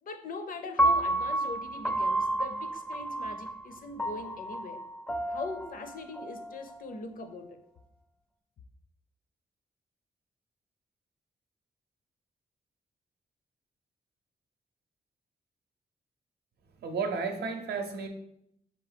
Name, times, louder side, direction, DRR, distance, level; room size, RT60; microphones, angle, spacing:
voice 1, 0.0-4.9 5.3-7.6, left 3 dB, 55° left, 8 dB, 0.5 m, -41 dB
Piano, 0.8-7.0, right 1 dB, 5° left, 0.4 m, -31 dB
voice 2, 16.8-18.1, right 5 dB, 80° right, 5 dB, 0.6 m, -32 dB
4.4 x 2.9 x 3.3 m, 0.75 s
cardioid pair, 80°, 17 cm